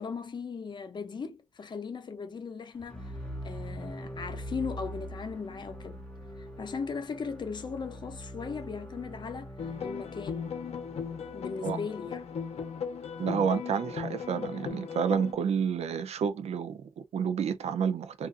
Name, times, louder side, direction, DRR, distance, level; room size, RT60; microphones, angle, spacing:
voice 1, 0.0-3.1 3.4-6.0 6.4-10.6 11.3-12.3, left 5 dB, 45° left, 0.5 m, -38 dB
sound 1, 2.7-12.8, equal, 10° left, 0.7 m, -43 dB
sound 2, 9.6-15.3, left 6 dB, 85° left, 0.6 m, -37 dB
voice 2, 13.2-18.3, right 7 dB, 90° right, 0.4 m, -30 dB
2.4 x 2.4 x 2.4 m
wide cardioid pair, 155°, 11 cm